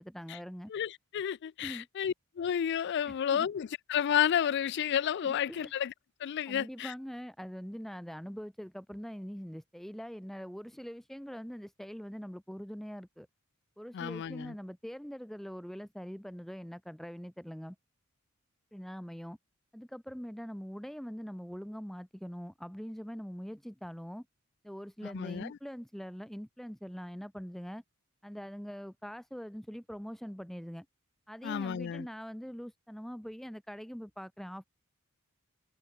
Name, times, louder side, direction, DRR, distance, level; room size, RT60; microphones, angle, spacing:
voice 1, 0.0-0.7 1.6-1.9 3.0-3.5 5.2-5.7 6.5-13.3 13.8-17.8 18.7-19.4 19.7-24.3 24.6-27.8 28.2-30.9 31.3-34.6, equal, ahead, 0.8 m, -43 dB
voice 2, 0.7-5.9 6.2-6.9 13.9-14.5 25.0-25.5 31.4-32.1, left 9 dB, 55° left, 0.3 m, -31 dB
head